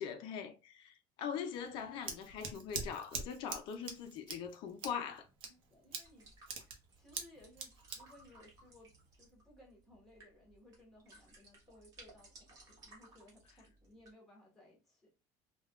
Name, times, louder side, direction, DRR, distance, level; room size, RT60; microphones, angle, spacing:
voice 1, 0.0-5.3, left 7 dB, 50° left, 0.4 m, -42 dB
Scissors, 1.5-9.3, right 5 dB, 60° right, 0.7 m, -45 dB
voice 2, 5.4-15.1, left 1 dB, 5° left, 1.2 m, -62 dB
sound 1, 6.0-14.1, right 2 dB, 35° right, 1.2 m, -61 dB
3.5 x 2.2 x 2.3 m
cardioid pair, 165°, 10 cm